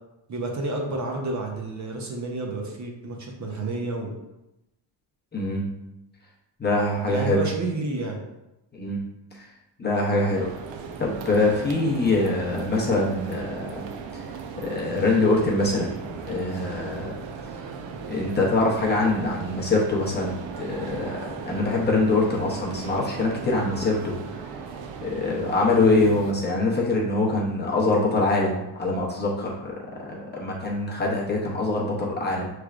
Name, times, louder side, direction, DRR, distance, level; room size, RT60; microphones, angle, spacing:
voice 1, 0.3-4.1 7.1-8.2, right 2 dB, 40° right, 1 dB, 0.7 m, -30 dB
voice 2, 5.3-5.7 6.6-7.4 8.7-9.0 9.8-10.5 11.0-13.8 14.6-15.9 16.2-17.2 18.1-24.2 25.0-32.5, left 2 dB, 25° left, -4 dB, 0.7 m, -24 dB
sound 1, 10.3-26.3, right 5 dB, 75° right, 0.6 m, -37 dB
6.0 x 3.2 x 2.4 m, 0.93 s
cardioid pair, 160°, 45 cm